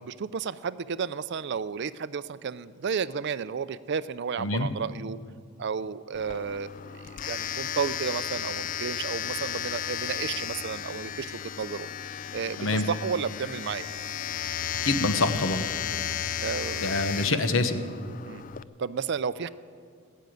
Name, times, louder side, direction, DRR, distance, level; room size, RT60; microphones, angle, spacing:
voice 1, 0.0-5.2 5.6-6.7 7.3-11.9 12.3-13.9 16.4-16.9 18.3-18.4 18.8-19.5, right 6 dB, 55° right, 16 dB, 0.4 m, -32 dB
voice 2, 4.4-4.7 12.6-12.8 14.8-15.7 16.8-17.8, left 2 dB, 70° left, 9 dB, 1.0 m, -25 dB
Domestic sounds home sounds, 6.1-18.6, left 9 dB, 40° left, 0.3 m, -34 dB
19.5 x 6.8 x 9.2 m, 2.2 s
head